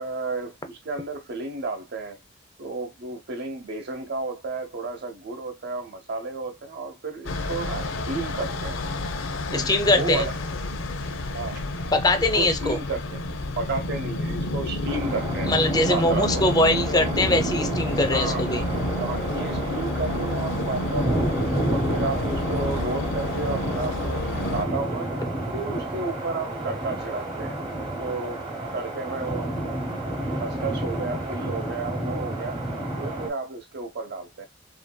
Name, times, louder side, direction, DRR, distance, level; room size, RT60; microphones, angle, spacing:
voice 1, 0.0-2.2 2.6-8.8 9.5-10.3 11.3-11.6 12.3-13.2 13.6-15.5 15.9-16.4 18.1-18.4 18.8-21.3 21.7-25.1 25.5-27.6 28.0-28.4 28.7-29.6 30.4-32.6 33.0-34.5, right 3 dB, 55° right, 0.7 m, -32 dB
sound 1, 7.2-24.6, left 2 dB, 75° left, 0.5 m, -30 dB
voice 2, 9.5-10.2 11.9-12.8 15.5-18.6, left 2 dB, 20° left, 0.5 m, -22 dB
sound 2, 14.9-33.3, right 1 dB, 25° right, 0.8 m, -30 dB
2.9 x 2.6 x 2.2 m
head